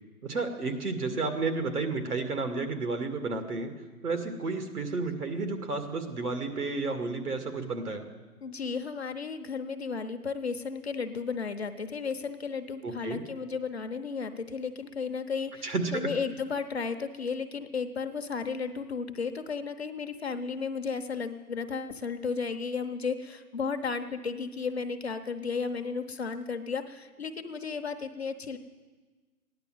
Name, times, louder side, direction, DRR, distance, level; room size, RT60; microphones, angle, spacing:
voice 1, 0.2-3.7 4.0-8.0 12.8-13.2 15.6-16.1, right 3 dB, 90° right, 6 dB, 2.4 m, -31 dB
voice 2, 8.4-28.6, left 5 dB, 45° left, 7 dB, 0.8 m, -34 dB
15.0 x 10.5 x 7.9 m, 1.3 s
hypercardioid pair, 180°, 44 cm